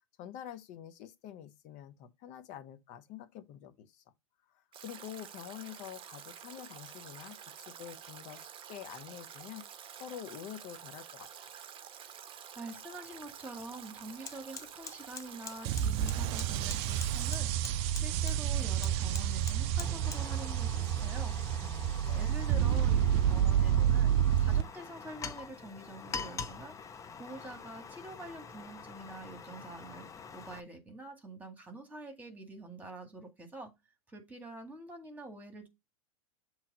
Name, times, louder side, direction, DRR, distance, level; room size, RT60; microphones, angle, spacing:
voice 1, 0.2-4.0 4.8-9.6 10.0-11.5 21.6-22.4, left 11 dB, 40° left, 1.0 m, -47 dB
Stream / Drip / Trickle dribble, 4.7-17.4, right 9 dB, 30° right, 0.8 m, -49 dB
voice 2, 12.6-17.5 17.9-21.4 22.1-26.8 27.2-30.1 30.3-33.7 34.1-35.7, right 2 dB, 10° right, 1.9 m, -46 dB
Fire, 13.1-13.3 13.6-30.6, left 5 dB, 15° left, 0.7 m, -46 dB
sound 1, 15.6-24.6, right 10 dB, 45° right, 0.5 m, -29 dB
7.2 x 3.2 x 5.3 m
hypercardioid pair, 110°, 19 cm